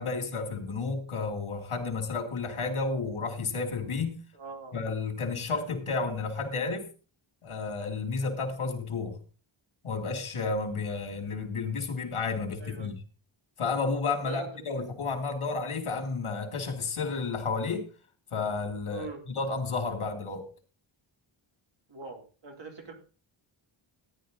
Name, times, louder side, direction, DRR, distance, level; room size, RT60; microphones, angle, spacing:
voice 1, 0.0-4.2 4.7-6.9 7.4-9.2 9.8-13.0 13.6-17.8 18.3-20.5, left 4 dB, 75° left, 4 dB, 3.0 m, -31 dB
voice 2, 4.3-4.8 12.6-12.9 14.2-14.5 18.9-19.2 21.9-22.9, right 4 dB, 60° right, 2 dB, 3.3 m, -42 dB
13.5 x 10.5 x 3.9 m, 0.36 s
wide cardioid pair, 130°, 50 cm